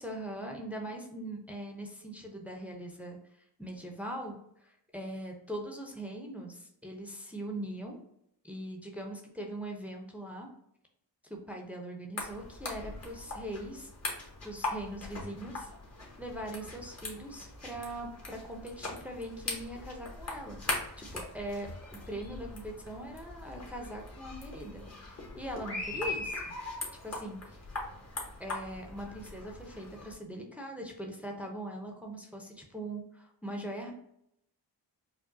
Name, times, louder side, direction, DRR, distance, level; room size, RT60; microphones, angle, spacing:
voice 1, 0.0-4.4 4.6-8.0 8.4-10.5 11.3-13.9 14.4-15.7 16.2-20.6 21.0-21.7 22.1-26.3 27.0-27.6 28.4-33.9, right 1 dB, 5° right, 1 dB, 0.7 m, -41 dB
sound 1, 12.2-30.1, left 2 dB, 35° left, 1.3 m, -41 dB
4.9 x 2.3 x 2.7 m, 0.76 s
cardioid pair, 55°, 44 cm